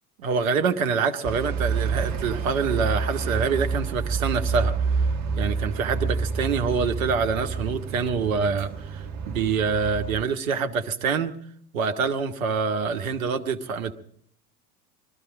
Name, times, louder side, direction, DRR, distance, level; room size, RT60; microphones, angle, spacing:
voice 1, 0.2-4.7 5.4-11.3 11.7-13.9, right 5 dB, 65° right, 8 dB, 1.2 m, -26 dB
sound 1, 1.2-10.2, right 5 dB, 40° right, 1.5 m, -28 dB
20.5 x 13.5 x 5.2 m, 0.64 s
figure-of-eight pair, 75°, 44 cm